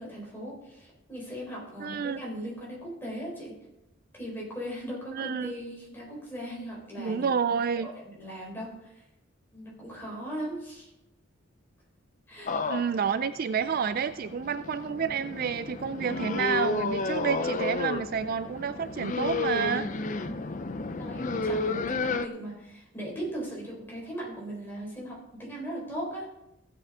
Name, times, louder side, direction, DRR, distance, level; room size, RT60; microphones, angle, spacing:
voice 1, 0.0-3.5 4.1-7.3 7.8-8.9 9.5-10.9 12.3-12.7 20.0-20.4 21.0-26.3, equal, 10° left, -5 dB, 4.3 m, -38 dB
voice 2, 1.8-2.2 5.1-5.5 7.0-7.9 12.7-19.9, right 6 dB, 45° right, 13 dB, 0.3 m, -29 dB
sound 1, 12.5-22.3, left 3 dB, 40° left, 0.5 m, -32 dB
15.5 x 8.1 x 3.6 m, 0.88 s
head